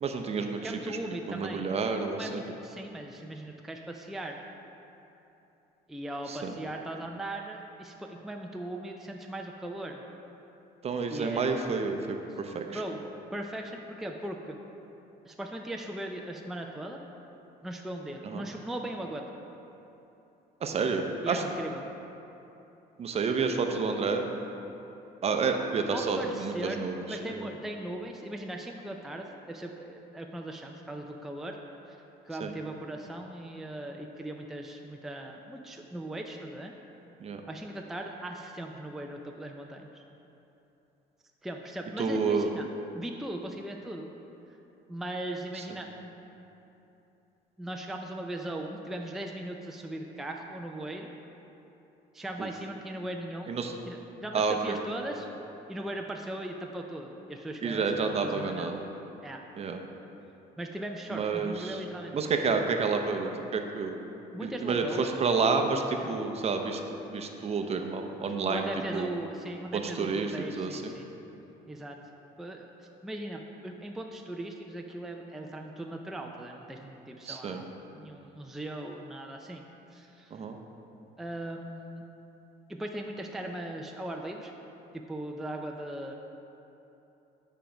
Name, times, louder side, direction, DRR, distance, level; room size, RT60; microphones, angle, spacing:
voice 1, 0.0-0.6 0.9-1.0 1.3-2.4 6.4-6.5 10.8-12.8 18.2-18.4 20.6-21.4 23.0-24.3 25.2-27.0 27.3-27.5 32.4-32.5 37.2-37.4 42.0-42.5 52.4-52.5 53.5-53.7 54.3-54.8 57.6-58.8 59.6-59.8 61.1-61.8 62.1-64.0 64.4-66.8 67.1-69.1 69.7-70.3 70.6-70.9 77.3-77.6 80.3-80.5, right 4 dB, 40° right, 4 dB, 0.7 m, -29 dB
voice 2, 0.6-1.7 2.1-4.4 5.9-10.0 11.1-11.5 12.3-12.4 12.7-13.0 13.3-14.6 15.2-17.0 17.6-19.2 21.2-21.9 25.9-31.6 31.9-36.7 37.5-40.0 41.4-42.7 42.9-44.1 44.9-45.9 47.6-51.1 52.1-53.6 53.9-55.3 55.7-58.7 59.2-59.4 60.6-62.1 64.3-65.3 66.0-66.2 68.5-71.1 71.7-72.0 72.4-72.7 73.0-77.7 77.9-79.6 79.9-80.4 81.2-82.0 82.7-84.5 84.9-86.2, right 1 dB, ahead, 1 dB, 0.4 m, -39 dB
9.1 x 4.5 x 5.1 m, 3.0 s
cardioid pair, 110°, 17 cm